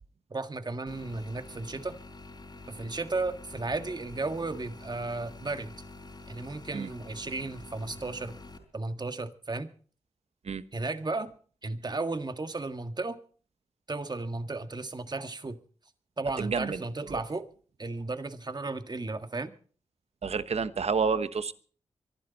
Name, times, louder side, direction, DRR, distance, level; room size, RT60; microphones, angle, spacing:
voice 1, 0.3-2.0 2.7-5.8 6.3-8.4 8.7-9.7 10.7-11.3 11.6-13.2 13.9-15.6 16.2-17.4 17.8-19.5, right 3 dB, 35° right, 9 dB, 1.7 m, -34 dB
sound 1, 0.9-8.6, left 2 dB, 40° left, 4.1 m, -47 dB
voice 2, 16.4-16.8 17.1-17.2 20.2-21.5, right 5 dB, 65° right, 13 dB, 1.1 m, -29 dB
24.5 x 11.5 x 4.1 m, 0.43 s
cardioid pair, 50°, 12 cm